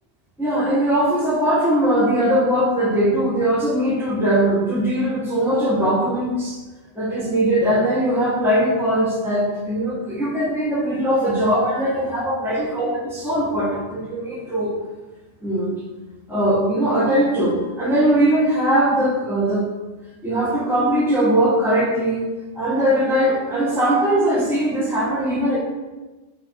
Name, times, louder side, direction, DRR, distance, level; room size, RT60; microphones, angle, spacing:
voice 1, 0.4-6.6 6.9-14.7 15.4-15.7 16.3-19.7 20.2-22.3 22.5-25.6, right 1 dB, ahead, -6 dB, 1.5 m, -20 dB
8.6 x 3.5 x 4.7 m, 1.2 s
omnidirectional pair, 1.3 m